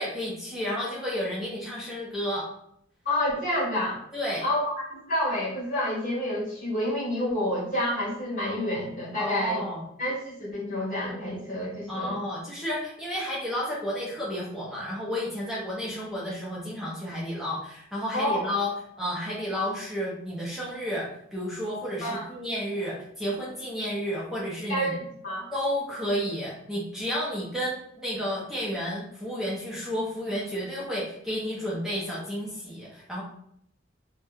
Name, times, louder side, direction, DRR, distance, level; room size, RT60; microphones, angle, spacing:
voice 1, 0.0-2.5 4.1-4.4 9.2-9.8 11.9-18.7 19.0-24.9 25.5-33.2, equal, ahead, -6 dB, 0.4 m, -31 dB
voice 2, 3.0-4.0 4.4-9.6 10.0-12.2 18.1-18.5 22.0-22.2 24.7-25.4, left 1 dB, 45° left, -6 dB, 1.3 m, -29 dB
2.9 x 2.0 x 2.2 m, 0.73 s
head